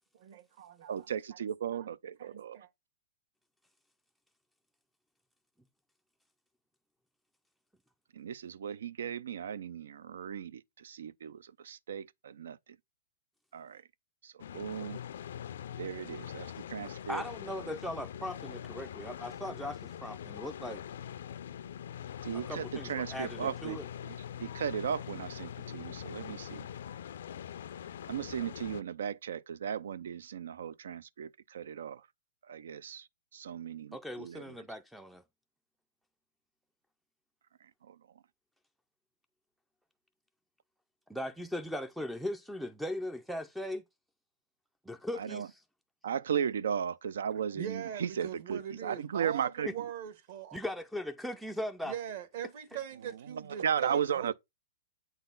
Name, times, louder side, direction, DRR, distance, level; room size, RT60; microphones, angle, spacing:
voice 1, 0.2-1.1 1.4-1.9 2.2-2.7 47.5-50.6 51.8-54.3, right 9 dB, 50° right, 1.4 m, -42 dB
voice 2, 0.9-2.6 8.2-12.6 13.5-13.8 14.2-15.0 15.8-17.2 22.2-23.8 24.4-26.7 28.1-32.0 32.5-33.0 33.3-34.4 37.9-38.0 45.2-45.5 46.0-49.7 53.6-54.3, right 8 dB, 80° right, 0.5 m, -36 dB
sound 1, 14.4-28.8, left 9 dB, 70° left, 0.4 m, -43 dB
voice 3, 17.1-20.8 22.5-23.9 33.9-35.2 41.1-43.8 44.9-45.6 49.7-49.8 50.5-51.9, left 1 dB, ahead, 0.4 m, -39 dB
7.8 x 4.0 x 3.9 m
hypercardioid pair, 165°, 0 cm